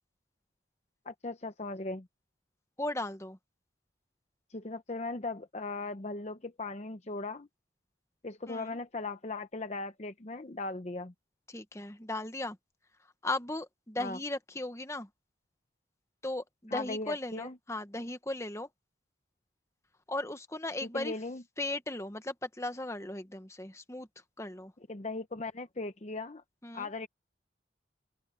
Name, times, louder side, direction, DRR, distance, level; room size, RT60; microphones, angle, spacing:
voice 1, 1.1-2.1 4.5-7.5 8.2-11.1 14.0-14.2 16.7-17.5 20.8-21.4 24.9-26.4 26.7-27.1, left 3 dB, 35° left, 0.7 m, -38 dB
voice 2, 2.8-3.4 8.5-8.8 11.5-12.6 13.2-15.1 16.2-18.7 20.1-21.1 21.6-24.1 24.4-24.7 26.6-26.9, left 2 dB, 15° left, 1.1 m, -37 dB
open air
head